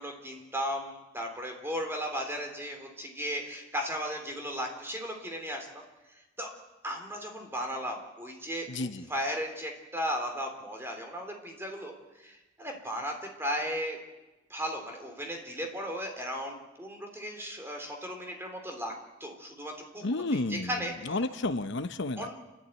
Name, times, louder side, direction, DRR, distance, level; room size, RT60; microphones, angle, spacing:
voice 1, 0.0-5.7 6.4-6.5 6.8-14.0 14.5-18.9 19.2-20.0 20.3-21.2 22.2-22.3, equal, 10° right, 3 dB, 3.5 m, -36 dB
voice 2, 8.7-9.1 20.0-20.7 21.0-22.3, left 2 dB, 60° left, 11 dB, 0.8 m, -31 dB
29.0 x 12.0 x 9.4 m, 1.1 s
head